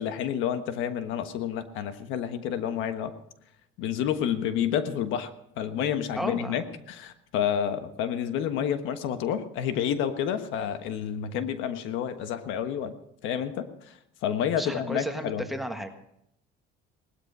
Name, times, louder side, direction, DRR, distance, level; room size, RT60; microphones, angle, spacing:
voice 1, 0.0-3.1 3.8-5.3 5.6-12.9 13.2-13.9 14.2-15.4, left 9 dB, 80° left, 10 dB, 1.3 m, -29 dB
voice 2, 6.1-6.6 14.6-15.9, equal, ahead, 7 dB, 1.5 m, -33 dB
19.0 x 13.0 x 5.5 m, 0.76 s
cardioid pair, 120°, 20 cm